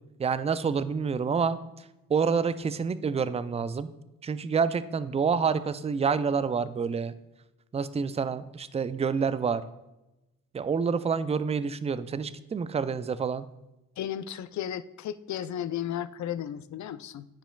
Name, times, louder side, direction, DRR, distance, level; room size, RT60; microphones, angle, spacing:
voice 1, 0.2-1.6 2.1-3.9 4.2-7.1 7.7-9.6 10.5-13.5, right 5 dB, 20° right, 14 dB, 0.3 m, -28 dB
voice 2, 14.0-17.3, left 10 dB, 55° left, 14 dB, 0.4 m, -34 dB
10.0 x 5.0 x 2.3 m, 0.96 s
supercardioid pair, 55°, 36 cm